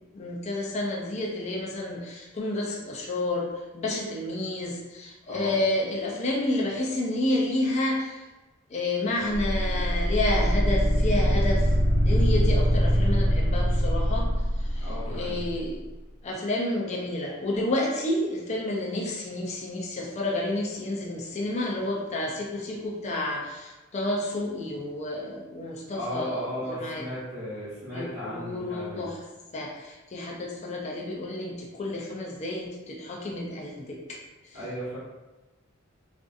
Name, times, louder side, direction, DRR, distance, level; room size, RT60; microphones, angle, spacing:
voice 1, 0.1-3.5 3.7-8.2 8.7-11.7 12.0-14.3 14.6-15.8 16.2-27.1 27.9-29.2 29.5-34.2 34.5-34.6, left 1 dB, 30° left, -2 dB, 0.4 m, -30 dB
sound 1, 9.3-15.5, equal, 80° right, 0.7 m, -23 dB
voice 2, 14.8-15.4 25.9-29.0 34.5-35.0, equal, 45° right, -12 dB, 0.9 m, -35 dB
2.5 x 2.5 x 2.3 m, 1.1 s
head